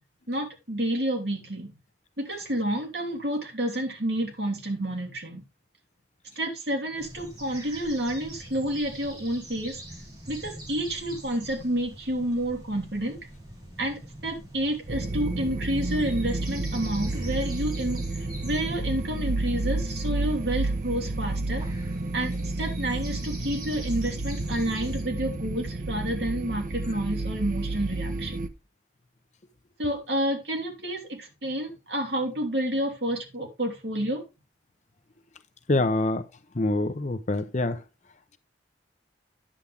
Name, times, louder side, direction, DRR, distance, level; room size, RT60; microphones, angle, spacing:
voice 1, 0.3-1.7 2.2-5.4 6.4-9.8 10.3-13.2 13.8-21.6 22.1-28.5 29.8-34.2 35.7-35.9, right 1 dB, 60° right, 2.8 m, -29 dB
sound 1, 7.0-25.0, right 1 dB, 25° right, 5.1 m, -43 dB
sound 2, 14.9-28.5, right 2 dB, 45° right, 0.8 m, -31 dB
voice 2, 35.7-36.2 36.6-37.8, left 2 dB, 40° left, 0.7 m, -25 dB
10.0 x 7.1 x 3.4 m
head